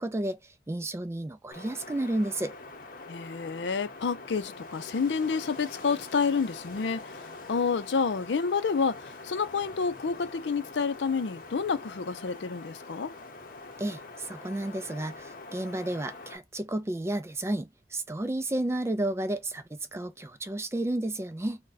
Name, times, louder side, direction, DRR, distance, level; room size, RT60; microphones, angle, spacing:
voice 1, 0.0-2.5 13.8-21.6, right 1 dB, 15° right, 0.4 m, -32 dB
Wind, 1.5-16.4, left 3 dB, 55° left, 0.8 m, -44 dB
voice 2, 3.1-7.1 7.5-13.1, left 5 dB, 85° left, 0.5 m, -29 dB
2.6 x 2.2 x 3.9 m
head